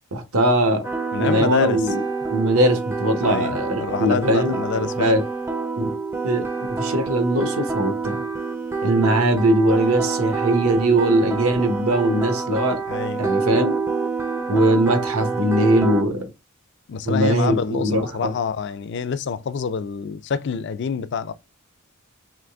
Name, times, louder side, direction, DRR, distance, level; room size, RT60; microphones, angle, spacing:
voice 1, 0.1-0.9 1.2-2.0 2.3-5.2 5.8-5.9 6.2-8.2 8.8-12.8 13.2-13.7 14.5-16.3 17.0-18.3, right 1 dB, 80° right, 1.0 m, -20 dB
sound 1, 0.8-16.0, right 4 dB, 10° right, 0.4 m, -27 dB
voice 2, 1.1-1.8 3.2-5.2 12.9-13.3 16.9-21.3, left 6 dB, 55° left, 0.4 m, -26 dB
3.7 x 3.2 x 3.4 m
head